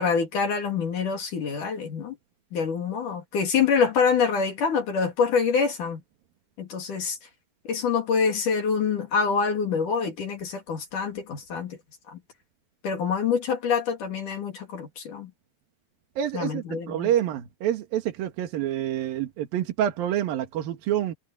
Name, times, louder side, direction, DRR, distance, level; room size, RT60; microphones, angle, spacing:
voice 1, 0.0-2.2 2.5-6.0 6.6-7.2 7.7-11.8 12.1-12.2 12.8-15.3 16.3-17.1, left 6 dB, 60° left, 4.2 m, -26 dB
voice 2, 16.2-21.1, right 11 dB, 80° right, 3.4 m, -27 dB
omnidirectional pair, 4.1 m